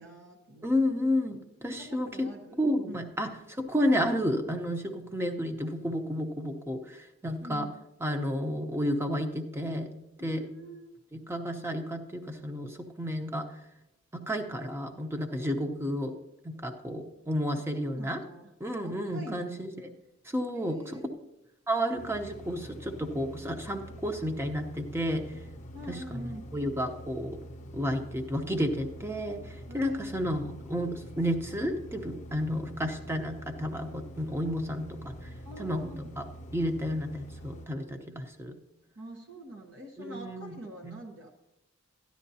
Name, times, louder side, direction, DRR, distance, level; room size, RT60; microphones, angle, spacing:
voice 1, 0.0-0.7 1.8-3.0 7.4-7.7 10.2-11.0 17.8-18.5 18.8-19.6 20.5-21.0 25.7-26.4 29.7-30.0 35.4-36.1 39.0-41.3, right 1 dB, 65° right, 1 dB, 1.0 m, -45 dB
voice 2, 0.6-2.3 2.6-7.7 8.0-9.9 10.2-10.5 11.1-13.5 14.1-16.1 16.4-18.2 18.6-19.9 20.2-20.8 21.7-25.3 25.9-26.0 26.5-27.4 27.7-35.3 35.6-36.2 36.5-38.6 40.0-40.6 40.8-41.0, equal, 10° right, 6 dB, 0.8 m, -31 dB
sound 1, 22.0-37.7, equal, 40° left, 0.7 m, -45 dB
13.5 x 10.5 x 2.8 m, 0.93 s
head